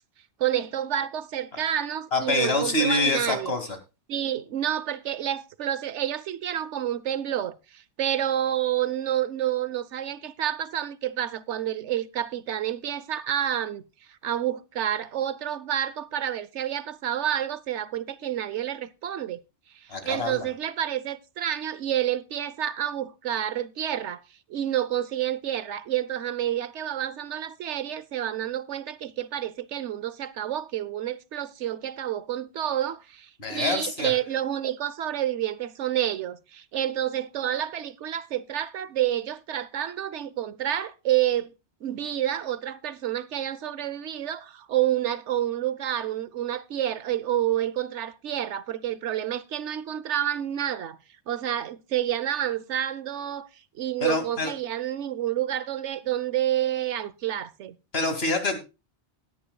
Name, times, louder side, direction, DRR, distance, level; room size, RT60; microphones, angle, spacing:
voice 1, 0.4-3.5 4.1-13.8 14.2-19.4 20.0-24.2 24.5-41.5 41.8-51.0 51.3-53.5 53.8-57.7, right 11 dB, 80° right, 1.1 m, -29 dB
voice 2, 2.1-3.7 19.9-20.5 33.4-34.1 54.0-54.5 57.9-58.6, left 2 dB, 60° left, 2.6 m, -26 dB
18.0 x 10.0 x 2.3 m
omnidirectional pair, 1.2 m